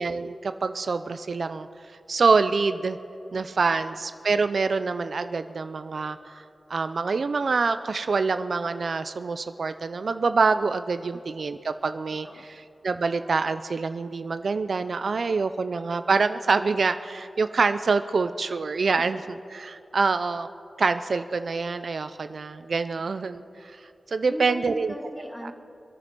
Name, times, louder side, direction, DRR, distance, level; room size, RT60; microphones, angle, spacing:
voice 1, 0.0-1.7 2.1-3.0 3.3-6.4 6.7-12.3 12.8-19.2 19.5-20.5 20.8-23.8 24.1-24.9, right 4 dB, 70° right, 11 dB, 0.5 m, -25 dB
voice 2, 12.2-12.7 19.0-19.1 24.3-25.5, equal, 15° left, 2 dB, 2.5 m, -40 dB
26.0 x 9.0 x 6.1 m, 2.6 s
cardioid pair, 60°, 0 cm